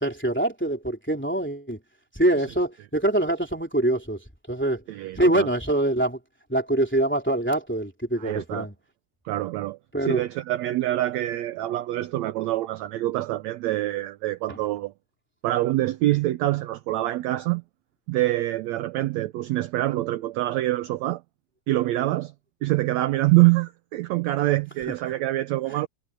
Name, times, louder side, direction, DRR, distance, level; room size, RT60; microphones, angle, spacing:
voice 1, 0.0-1.8 2.1-4.8 5.2-6.2 6.5-8.7 9.9-10.2 14.5-14.6, right 1 dB, 5° left, 2.7 m, -24 dB
voice 2, 4.9-5.5 8.2-8.7 9.3-14.9 15.4-17.6 18.1-21.2 21.7-22.3 22.6-25.9, right 16 dB, 75° right, 1.7 m, -25 dB
omnidirectional pair, 3.7 m